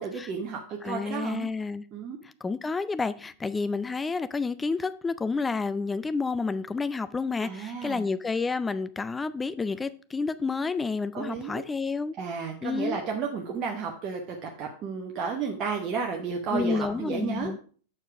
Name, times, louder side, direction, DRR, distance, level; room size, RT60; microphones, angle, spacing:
voice 1, 0.0-1.5 1.9-2.2 7.4-8.1 11.1-11.6 12.2-17.5, right 5 dB, 35° right, 0.9 m, -32 dB
voice 2, 0.8-1.8 2.4-12.1 12.6-13.0 16.5-17.6, left 4 dB, 15° left, 0.4 m, -30 dB
7.6 x 4.6 x 4.8 m
figure-of-eight pair, 90°, 0 cm